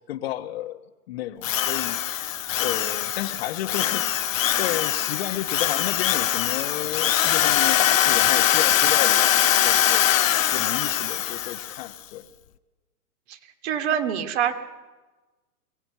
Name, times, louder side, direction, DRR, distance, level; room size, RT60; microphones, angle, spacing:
voice 1, 0.0-2.2 2.6-4.1 4.5-10.1 10.5-12.3, left 12 dB, 45° left, 1.3 m, -32 dB
Drill, 1.4-11.8, left 11 dB, 60° left, 1.0 m, -22 dB
voice 2, 13.6-14.5, right 9 dB, 45° right, 2.3 m, -24 dB
23.0 x 17.0 x 9.4 m
figure-of-eight pair, 120°, 44 cm